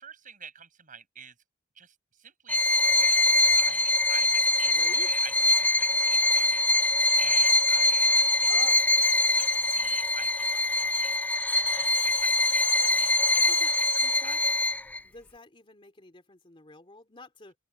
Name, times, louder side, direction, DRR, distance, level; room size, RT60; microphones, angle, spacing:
voice 1, 0.0-1.3 1.8-2.6 2.9-3.3 3.5-8.6 9.4-13.5 14.2-14.5, right 7 dB, 45° right, 6.7 m, -47 dB
Bowed string instrument, 2.5-15.0, left 1 dB, 10° left, 0.4 m, -23 dB
voice 2, 4.7-5.1 8.4-9.1 13.4-13.7 14.0-14.4 15.0-17.5, left 3 dB, 25° left, 2.9 m, -48 dB
open air
head